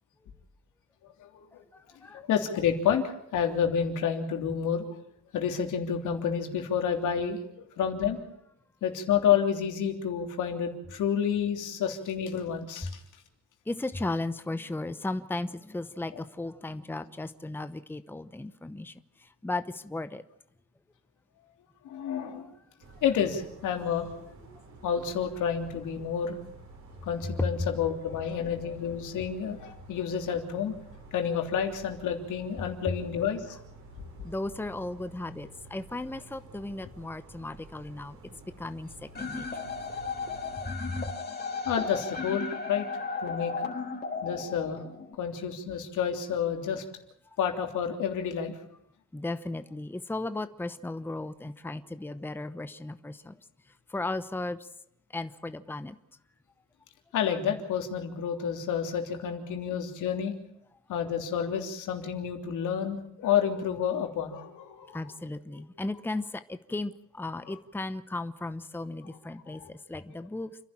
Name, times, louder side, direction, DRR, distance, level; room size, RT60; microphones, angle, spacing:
voice 1, 1.2-1.6 2.1-4.8 5.3-7.4 7.8-8.2 8.8-13.0 21.8-22.5 23.0-24.1 24.8-26.4 27.0-30.7 31.1-33.6 34.2-34.3 40.6-40.7 41.6-42.9 43.2-43.7 44.2-44.8 45.2-46.8 47.4-48.6 57.1-60.3 60.9-65.0 67.5-67.6 69.5-69.7, left 8 dB, 80° left, 4 dB, 3.3 m, -29 dB
voice 2, 1.7-2.2 12.8-12.9 13.7-20.2 22.4-22.5 27.4-27.5 34.2-39.5 40.6-41.2 49.1-53.4 53.9-54.7 55.1-56.0 64.8-70.6, left 2 dB, 5° left, 12 dB, 0.9 m, -35 dB
sound 1, 22.8-40.7, right 2 dB, 70° right, 6.5 m, -51 dB
sound 2, 39.1-45.1, left 4 dB, 35° left, 4.3 m, -35 dB
29.5 x 11.5 x 8.8 m, 0.76 s
cardioid pair, 90°, 30 cm